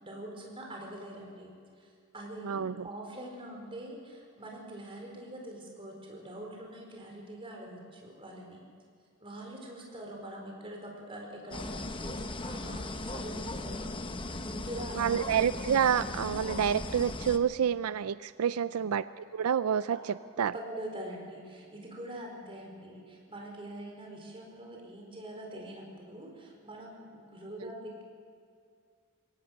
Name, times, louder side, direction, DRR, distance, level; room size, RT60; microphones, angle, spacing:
voice 1, 0.0-1.5 1.8-8.6 9.2-15.2 18.5-18.7 19.9-20.2 20.5-28.0, right 1 dB, 25° right, 0 dB, 4.5 m, -44 dB
voice 2, 2.4-2.7 14.9-20.5 27.6-27.7, right 8 dB, 85° right, 15 dB, 0.4 m, -28 dB
sound 1, 11.5-17.4, left 2 dB, 25° left, 0.8 m, -38 dB
23.0 x 17.5 x 6.5 m, 2.3 s
head